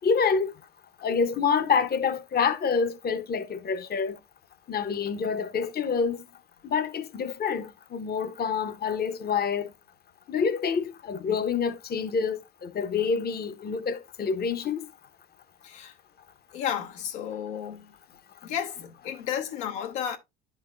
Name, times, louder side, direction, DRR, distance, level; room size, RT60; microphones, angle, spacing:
voice 1, 0.0-0.5 1.0-4.2 4.7-6.2 6.6-9.7 10.3-14.8, left 6 dB, 30° left, 0.7 m, -27 dB
voice 2, 15.6-16.0 16.5-17.9 18.4-20.2, left 9 dB, 80° left, 1.1 m, -32 dB
11.0 x 3.9 x 2.4 m
hypercardioid pair, 70°, 34 cm